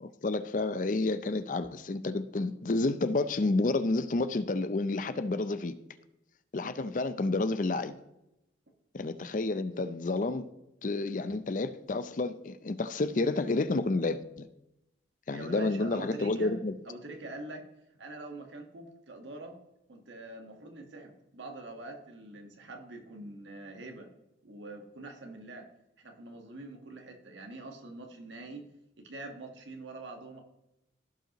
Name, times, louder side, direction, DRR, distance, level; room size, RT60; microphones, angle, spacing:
voice 1, 0.0-5.7 6.5-8.0 8.9-10.5 10.8-14.5 15.3-16.7, left 2 dB, 45° left, 12 dB, 0.5 m, -30 dB
voice 2, 15.3-16.6 16.8-17.7 17.9-19.6 19.9-24.1 24.4-25.7 26.0-28.7 29.0-30.4, right 2 dB, 85° right, 3 dB, 1.5 m, -44 dB
16.0 x 5.4 x 3.0 m, 0.88 s
head